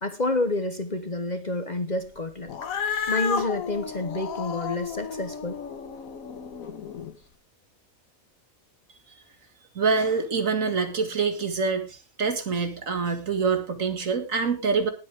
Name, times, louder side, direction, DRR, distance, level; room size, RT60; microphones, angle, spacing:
voice 1, 0.0-2.5 2.9-5.6, left 2 dB, 35° left, 9 dB, 1.1 m, -29 dB
Cat, 2.5-7.1, left 6 dB, 70° left, 1.6 m, -32 dB
voice 2, 9.8-14.9, right 5 dB, 65° right, 7 dB, 2.3 m, -25 dB
19.0 x 8.4 x 3.6 m, 0.29 s
omnidirectional pair, 1.5 m